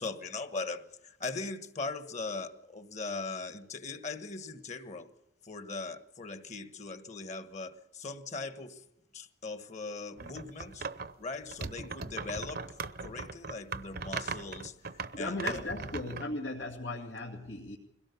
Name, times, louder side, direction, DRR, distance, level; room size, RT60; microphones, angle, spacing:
voice 1, 0.0-5.1 5.4-8.8 9.1-10.9 11.2-14.8 15.2-15.6, left 3 dB, 40° left, 1.4 m, -40 dB
sound 1, 10.2-11.1 11.5-16.3, right 4 dB, 55° right, 0.9 m, -39 dB
voice 2, 15.1-17.8, left 2 dB, 85° left, 2.2 m, -37 dB
22.0 x 17.5 x 7.1 m
head